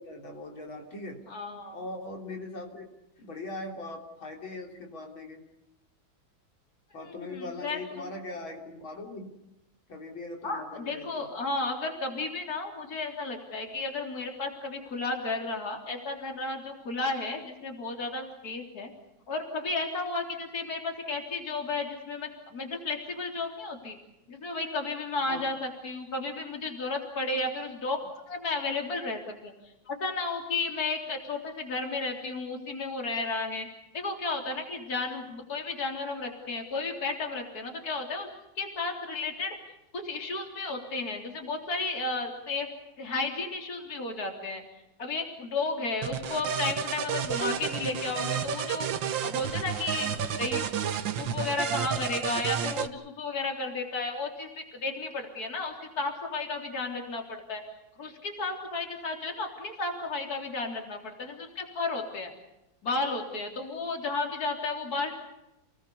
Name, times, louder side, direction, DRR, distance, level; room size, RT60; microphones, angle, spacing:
voice 1, 0.0-1.2 1.7-2.9 3.2-5.4 6.9-9.3 9.9-11.3 25.3-25.6, left 2 dB, 80° left, 1 dB, 4.4 m, -40 dB
voice 2, 1.3-1.8 7.0-8.1 10.4-18.9 19.3-24.0 24.3-28.0 28.3-29.5 29.9-33.7 33.9-38.3 38.6-39.6 39.9-42.7 43.0-44.6 45.0-48.9 49.2-50.7 51.2-57.6 58.0-62.3 62.8-65.1, left 3 dB, 50° left, 3 dB, 4.0 m, -33 dB
sound 1, 46.0-52.9, right 8 dB, 70° right, 1.8 m, -31 dB
29.5 x 19.5 x 7.0 m, 0.92 s
omnidirectional pair, 2.2 m